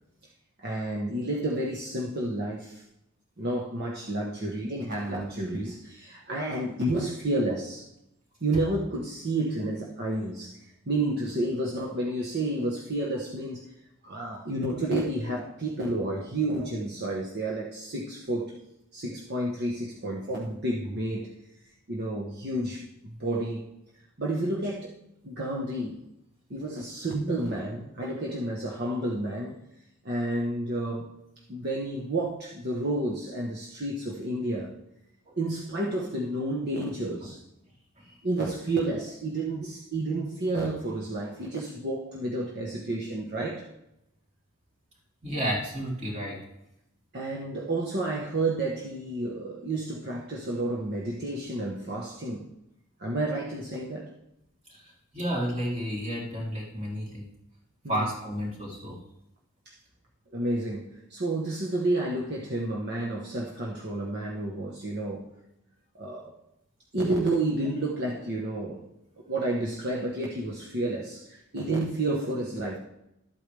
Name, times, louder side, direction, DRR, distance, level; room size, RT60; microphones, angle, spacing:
voice 1, 0.6-2.8 3.4-7.9 8.4-13.6 14.0-18.6 18.9-21.3 21.9-23.7 24.2-24.9 25.2-26.0 26.5-29.6 30.0-31.1 31.5-34.7 35.4-37.4 38.2-43.7 47.1-52.5 53.0-54.1 57.8-58.1 59.6-59.8 60.3-65.3 66.0-66.3 66.9-68.9 69.2-72.8, right 1 dB, 50° right, -2 dB, 1.2 m, -30 dB
voice 2, 45.2-46.4 54.7-57.2 57.9-59.0, equal, 30° right, -4 dB, 3.4 m, -32 dB
13.0 x 8.6 x 3.4 m, 0.84 s
head